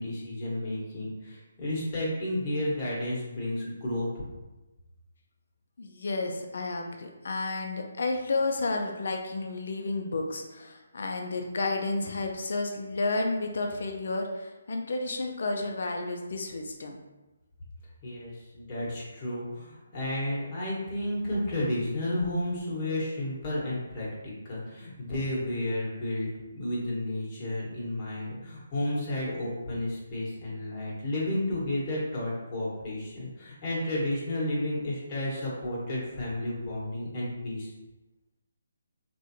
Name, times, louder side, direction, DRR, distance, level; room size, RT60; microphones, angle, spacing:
voice 1, 0.0-4.2 18.0-37.7, left 1 dB, 30° left, -6 dB, 1.2 m, -32 dB
voice 2, 5.8-17.0, left 3 dB, 65° left, 3 dB, 0.5 m, -31 dB
3.4 x 2.6 x 2.7 m, 1.1 s
hypercardioid pair, 155°, 0 cm